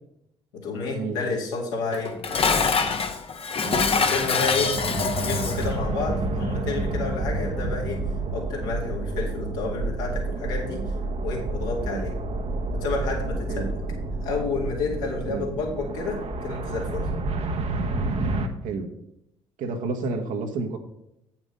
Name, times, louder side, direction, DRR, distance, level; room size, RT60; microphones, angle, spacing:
voice 1, 0.5-2.5 3.9-4.8 5.2-8.0 8.3-10.8 11.2-12.1 12.8-13.7 14.2-17.1, left 4 dB, 75° left, -2 dB, 2.2 m, -30 dB
Dishes pots and pans, 1.9-5.7, left 5 dB, 40° left, 1.0 m, -24 dB
sound 1, 4.2-18.5, right 2 dB, 45° right, 1.0 m, -29 dB
voice 2, 19.6-20.8, right 4 dB, 60° right, 3 dB, 1.3 m, -30 dB
8.2 x 5.9 x 5.3 m, 0.80 s
hypercardioid pair, 50°, 15 cm